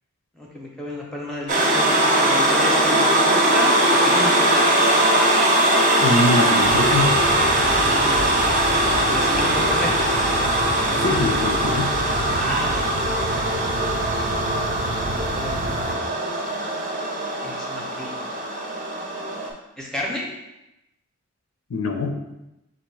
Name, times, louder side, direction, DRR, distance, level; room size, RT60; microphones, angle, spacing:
voice 1, 0.4-4.6 9.1-9.9 12.3-13.2 15.1-16.0 17.4-18.3 19.8-20.3, equal, 5° left, -3 dB, 0.6 m, -32 dB
sound 1, 1.5-19.5, right 1 dB, 35° right, 0.6 m, -20 dB
voice 2, 6.0-7.2 11.0-11.9 21.7-22.1, left 2 dB, 75° left, 3 dB, 0.5 m, -22 dB
sound 2, 6.6-16.0, right 2 dB, 80° right, 0.5 m, -31 dB
4.1 x 2.5 x 4.6 m, 0.92 s
head